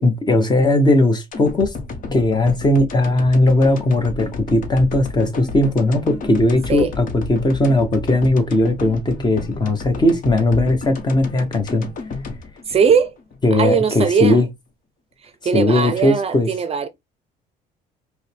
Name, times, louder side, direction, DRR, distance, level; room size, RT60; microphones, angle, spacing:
voice 1, 0.0-1.7 2.1-11.8 13.4-14.5 15.5-16.5, left 1 dB, 25° left, 1.0 m, -18 dB
sound 1, 1.3-13.5 13.9-14.0, left 4 dB, 55° left, 1.2 m, -32 dB
voice 2, 12.7-13.1 13.5-14.4 15.4-16.9, right 6 dB, 35° right, 0.6 m, -19 dB
5.3 x 2.2 x 3.4 m
cardioid pair, 110°, 17 cm